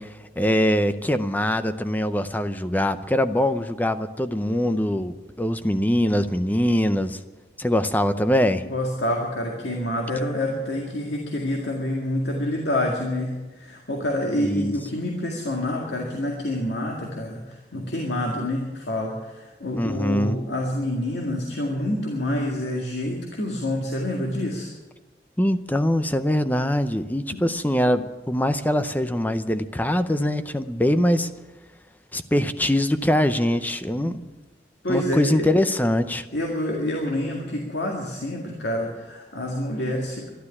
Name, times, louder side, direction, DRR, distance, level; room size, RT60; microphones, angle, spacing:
voice 1, 0.0-7.2 7.6-8.6 14.3-14.7 19.8-20.4 25.4-31.3 32.1-34.2 34.9-36.3, left 1 dB, 10° left, 11 dB, 0.6 m, -23 dB
voice 2, 8.7-24.7 27.3-27.4 34.0-34.1 34.8-35.5 36.3-40.3, left 1 dB, 85° left, 0 dB, 2.0 m, -27 dB
12.0 x 11.5 x 9.8 m, 1.2 s
head